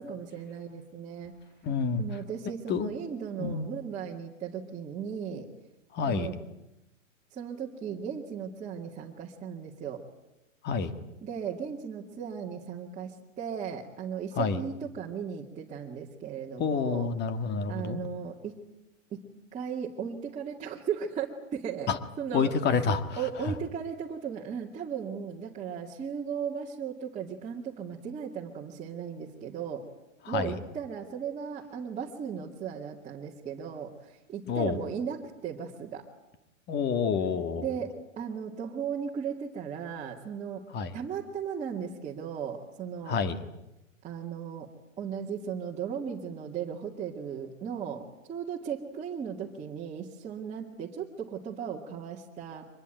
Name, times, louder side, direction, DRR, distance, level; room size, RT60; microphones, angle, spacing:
voice 1, 0.0-1.3 2.0-5.5 6.0-6.3 7.3-10.0 11.2-17.1 17.7-18.6 19.1-21.9 22.2-22.8 23.2-29.9 30.3-36.1 37.6-40.7 40.9-43.2 44.0-44.7 45.0-52.7, right 7 dB, 20° right, -4 dB, 2.2 m, -36 dB
voice 2, 1.6-2.0 2.7-2.9 3.4-3.7 5.9-6.3 10.6-10.9 14.4-14.6 16.6-18.0 21.9-22.0 22.3-23.5 30.3-30.6 34.5-34.8 36.7-37.7 40.7-40.9 43.1-43.4, left 5 dB, 25° left, 11 dB, 1.8 m, -28 dB
24.5 x 21.0 x 9.0 m, 0.94 s
hypercardioid pair, 125°, 39 cm